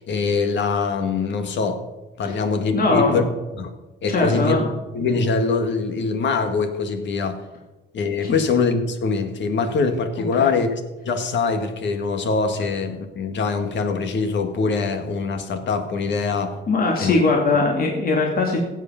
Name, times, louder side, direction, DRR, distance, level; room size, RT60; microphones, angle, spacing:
voice 1, 0.0-1.8 2.2-3.2 3.6-3.7 4.0-4.6 4.9-7.4 7.9-16.6 17.0-17.2 17.5-17.6, left 4 dB, 65° left, 7 dB, 1.8 m, -23 dB
voice 2, 2.7-3.2 4.1-4.7 8.2-8.3 10.4-10.5 16.7-18.6, left 3 dB, 45° left, 0 dB, 2.6 m, -20 dB
15.5 x 8.3 x 5.8 m, 1.1 s
cardioid pair, 90°, 20 cm